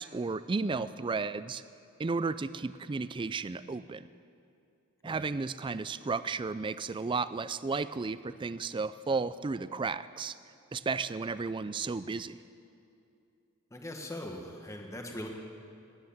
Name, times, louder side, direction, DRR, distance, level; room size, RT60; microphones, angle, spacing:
voice 1, 0.0-1.6 2.0-4.1 5.0-10.3 10.7-12.4, right 4 dB, 20° right, 15 dB, 0.3 m, -33 dB
voice 2, 13.7-15.3, left 1 dB, 15° left, 2 dB, 1.4 m, -41 dB
19.0 x 9.5 x 7.2 m, 2.6 s
head